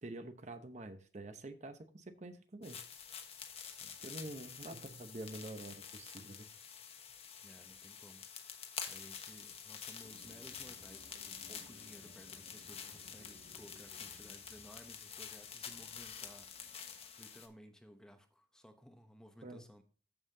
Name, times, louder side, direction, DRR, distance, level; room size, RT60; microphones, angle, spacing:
voice 1, 0.0-2.8 4.0-6.5 19.4-19.6, right 2 dB, 40° right, 0.9 m, -47 dB
sound 1, 2.6-17.5, left 7 dB, 35° left, 1.1 m, -48 dB
voice 2, 7.4-8.3 8.9-16.7 17.2-19.8, equal, 5° left, 0.9 m, -58 dB
sound 2, 10.0-17.2, equal, 75° right, 2.2 m, -63 dB
14.0 x 5.6 x 2.7 m
head